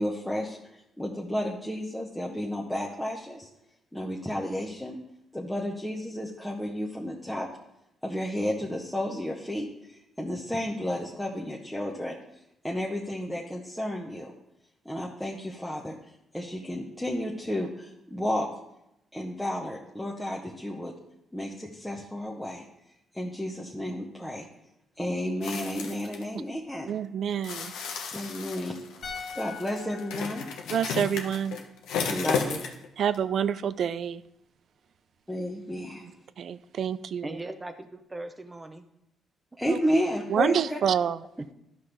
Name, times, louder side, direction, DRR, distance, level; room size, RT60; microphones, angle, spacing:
voice 1, 0.0-3.5 3.9-5.0 5.3-7.5 8.0-12.2 12.6-14.3 14.8-15.9 16.3-18.5 19.1-20.9 21.3-22.6 23.1-24.4 25.0-26.9 28.1-28.8 29.3-30.4 32.1-32.6 35.3-36.0 39.6-40.8, equal, 5° left, -3 dB, 1.0 m, -32 dB
sound 1, 25.4-26.2 27.4-32.9 33.1-33.2, left 6 dB, 85° left, 0.9 m, -34 dB
voice 2, 26.9-27.7 30.7-31.6 33.0-34.2 36.4-37.3 39.7-39.8 40.3-41.2, right 8 dB, 60° right, 15 dB, 0.4 m, -27 dB
sound 2, 29.0-32.2 32.5-32.7, left 5 dB, 60° left, 1.3 m, -44 dB
voice 3, 37.2-38.8 41.4-41.5, right 2 dB, 15° right, 6 dB, 0.6 m, -39 dB
12.0 x 5.6 x 3.3 m, 0.82 s
cardioid pair, 90°, 0 cm